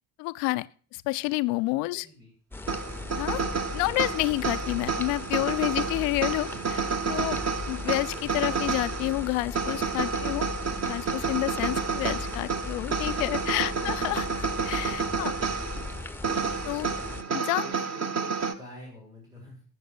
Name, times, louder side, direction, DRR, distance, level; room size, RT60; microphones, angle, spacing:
voice 1, 0.2-2.1 3.2-3.4 3.7-7.4 7.7-10.5 10.9-15.3 16.6-16.9 17.3-17.6, left 21 dB, 60° left, 0.6 m, -29 dB
voice 2, 1.7-2.3 13.3-14.2 17.0-19.6, left 1 dB, 90° right, 4.4 m, -48 dB
sound 1, 2.5-17.2, left 3 dB, 5° left, 0.8 m, -38 dB
sound 2, 2.7-18.5, right 5 dB, 35° right, 1.1 m, -30 dB
13.5 x 7.2 x 5.7 m
figure-of-eight pair, 50°, 46 cm